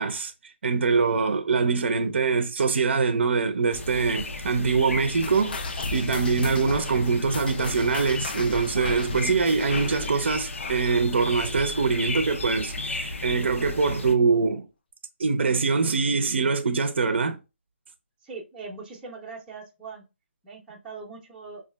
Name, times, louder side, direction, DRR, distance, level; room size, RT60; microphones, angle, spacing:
voice 1, 0.0-14.7 15.2-17.4, right 4 dB, 60° right, 0.5 m, -24 dB
sound 1, 3.7-14.1, left 2 dB, 80° left, 0.7 m, -34 dB
sound 2, 5.2-12.1 12.3-12.7 13.3-13.4 14.1-14.2, left 4 dB, 45° left, 0.4 m, -36 dB
voice 2, 18.2-20.0 20.4-21.6, right 4 dB, 5° right, 0.6 m, -41 dB
4.9 x 2.4 x 2.2 m
hypercardioid pair, 160°, 7 cm